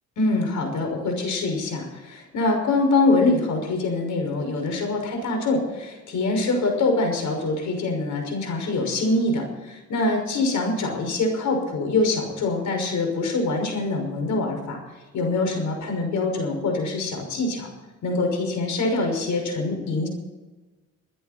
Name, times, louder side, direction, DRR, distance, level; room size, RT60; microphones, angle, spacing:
voice 1, 0.2-14.8 15.1-17.7 18.0-20.1, left 2 dB, 75° left, 3 dB, 5.9 m, -24 dB
25.5 x 10.0 x 4.4 m, 1.2 s
cardioid pair, 90°, 30 cm